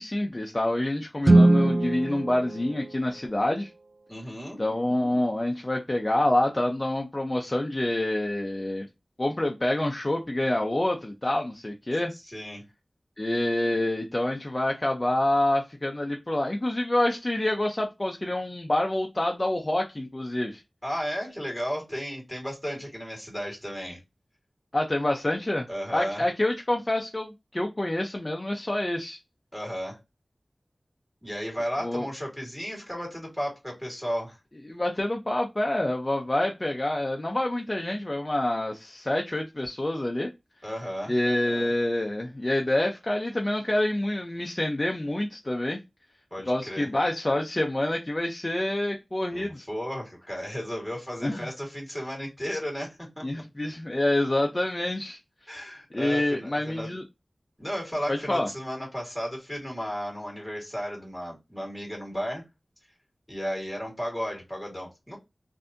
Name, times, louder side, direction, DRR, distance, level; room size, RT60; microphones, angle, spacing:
voice 1, 0.0-3.7 4.6-8.9 9.2-12.1 13.2-20.6 24.7-29.2 31.8-32.1 34.7-40.3 41.1-45.8 46.5-49.6 51.2-51.5 53.2-55.2 55.5-55.6 55.9-57.0 58.1-58.5, left 1 dB, 35° left, 2 dB, 0.6 m, -27 dB
Guitar, 1.2-3.8, right 2 dB, 50° right, 0.3 m, -22 dB
voice 2, 4.1-4.6 12.1-12.6 20.8-24.0 25.7-26.3 29.5-30.0 31.2-34.4 40.6-41.1 46.3-46.9 49.3-53.4 55.5-56.9 57.6-62.4 63.3-65.2, equal, ahead, -1 dB, 2.1 m, -34 dB
3.3 x 2.6 x 2.6 m, 0.22 s
wide cardioid pair, 40°, 0 cm